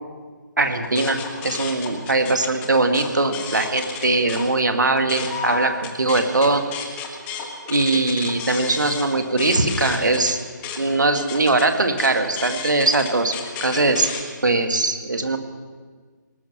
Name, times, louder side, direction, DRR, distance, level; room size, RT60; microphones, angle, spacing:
voice 1, 0.6-1.2 1.4-6.6 7.7-10.4 10.8-13.3 13.6-14.1 14.4-15.4, right 2 dB, 65° right, 6 dB, 1.8 m, -21 dB
sound 1, 0.8-4.5 4.8-14.2, left 5 dB, 15° left, 1.2 m, -33 dB
19.0 x 12.0 x 5.9 m, 1.5 s
figure-of-eight pair, 145°, 11 cm